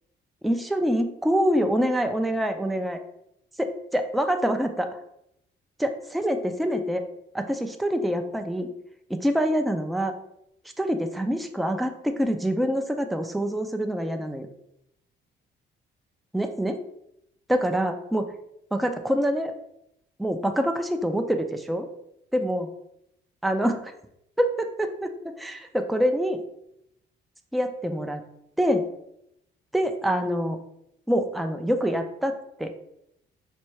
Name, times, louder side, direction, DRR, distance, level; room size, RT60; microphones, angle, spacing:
voice 1, 0.4-3.0 3.6-4.9 5.8-7.0 7.3-8.7 9.1-10.1 10.8-14.5 16.3-16.8 17.5-18.3 18.7-19.5 20.2-21.9 22.3-22.7 23.4-23.9 24.4-26.4 27.5-28.2 28.6-28.8 29.7-30.6 31.1-32.8, equal, ahead, 5 dB, 0.4 m, -25 dB
4.2 x 2.2 x 4.6 m, 0.79 s
cardioid pair, 90°, 20 cm